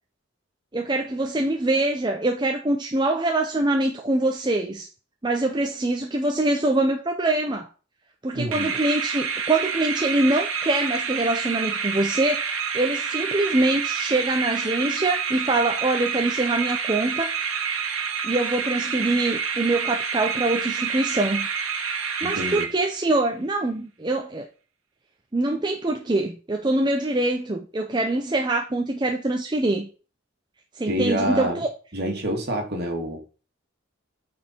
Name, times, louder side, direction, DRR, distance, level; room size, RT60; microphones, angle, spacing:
voice 1, 0.7-4.9 5.2-7.7 8.2-17.3 18.2-21.5 22.2-24.5 25.3-29.9 30.7-31.7, right 2 dB, 20° right, 0.6 m, -24 dB
voice 2, 8.3-8.8 22.2-22.7 30.9-31.6 31.9-33.2, equal, 50° right, 2.1 m, -27 dB
sound 1, 8.5-23.2, right 6 dB, 75° right, 1.4 m, -28 dB
8.8 x 4.4 x 4.5 m
head